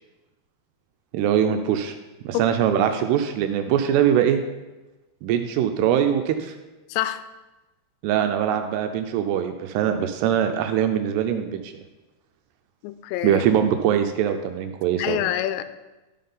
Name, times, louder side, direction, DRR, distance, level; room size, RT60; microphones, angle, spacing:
voice 1, 1.1-1.9 2.2-4.4 5.2-6.6 8.0-11.7 13.2-15.2, right 9 dB, 80° right, 6 dB, 2.5 m, -22 dB
voice 2, 6.9-7.2 12.8-13.4 15.0-15.6, left 13 dB, 90° left, 11 dB, 2.8 m, -26 dB
12.0 x 5.5 x 3.7 m, 1.1 s
omnidirectional pair, 5.0 m